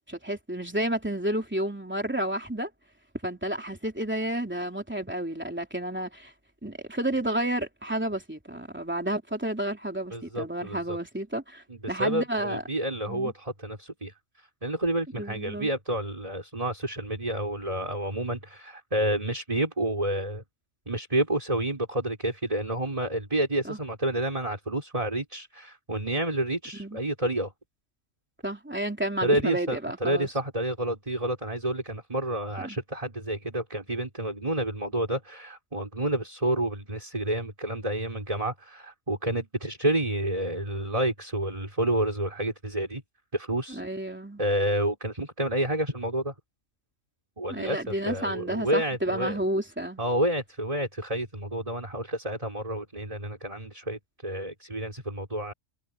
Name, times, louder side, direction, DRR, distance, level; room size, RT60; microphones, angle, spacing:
voice 1, 0.1-2.7 3.2-6.3 6.6-12.6 13.1-13.3 15.2-15.7 23.6-23.8 26.8-27.0 28.4-30.3 32.6-32.8 43.7-44.4 47.5-50.0, right 1 dB, 10° right, 3.3 m, -31 dB
voice 2, 10.1-11.0 11.7-20.4 20.9-27.5 29.2-43.0 43.3-43.8 44.4-46.3 47.4-49.4 50.0-55.5, right 1 dB, 25° right, 4.6 m, -29 dB
omnidirectional pair, 1.3 m